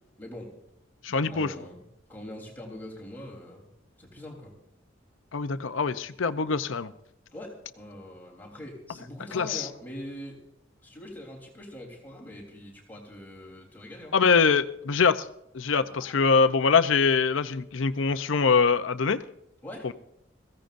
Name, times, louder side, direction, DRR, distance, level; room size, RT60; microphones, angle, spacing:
voice 1, 0.2-0.5 1.3-1.8 2.1-3.7 4.0-4.5 7.3-10.4 10.8-14.1 15.9-16.2 19.6-19.9, left 1 dB, 10° left, -3 dB, 3.5 m, -43 dB
voice 2, 1.0-1.5 5.3-6.9 9.3-9.7 14.1-15.3 15.5-19.2 19.8-19.9, left 5 dB, 85° left, 12 dB, 0.7 m, -23 dB
21.5 x 15.5 x 2.6 m, 0.80 s
head